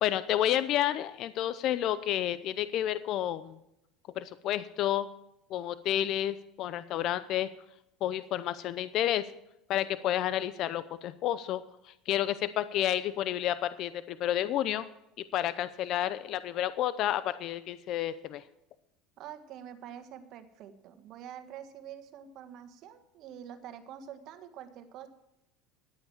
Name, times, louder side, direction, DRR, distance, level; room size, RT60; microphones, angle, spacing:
voice 1, 0.0-3.6 4.2-5.1 5.5-7.5 8.0-9.3 9.7-11.6 12.1-14.9 15.3-18.4, left 12 dB, 55° left, 15 dB, 0.6 m, -30 dB
voice 2, 19.2-25.1, right 9 dB, 55° right, 9 dB, 1.6 m, -46 dB
11.5 x 8.7 x 7.3 m, 0.85 s
supercardioid pair, 100°, 0 cm